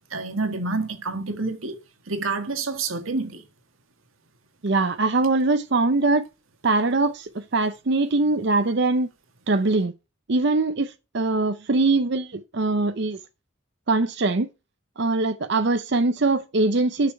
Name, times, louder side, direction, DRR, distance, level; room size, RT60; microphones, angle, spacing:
voice 1, 0.1-1.8 2.1-3.4, right 3 dB, 85° right, 2.0 m, -28 dB
voice 2, 4.6-6.2 6.6-9.1 9.5-9.9 10.3-13.2 13.9-14.5 15.0-17.1, right 3 dB, 55° right, 0.7 m, -22 dB
8.6 x 6.7 x 4.7 m
head